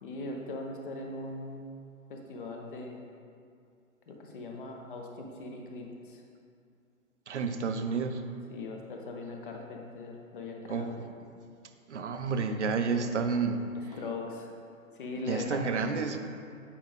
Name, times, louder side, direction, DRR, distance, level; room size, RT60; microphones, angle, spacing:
voice 1, 0.0-1.7 2.1-3.0 4.1-6.2 8.5-10.9 13.8-14.5 15.0-15.6, left 2 dB, 40° left, 1 dB, 0.9 m, -40 dB
voice 2, 7.3-8.2 10.7-11.1 11.9-13.7 15.3-16.2, right 5 dB, 55° right, 7 dB, 0.7 m, -30 dB
8.4 x 5.0 x 3.5 m, 2.4 s
figure-of-eight pair, 125°, 42 cm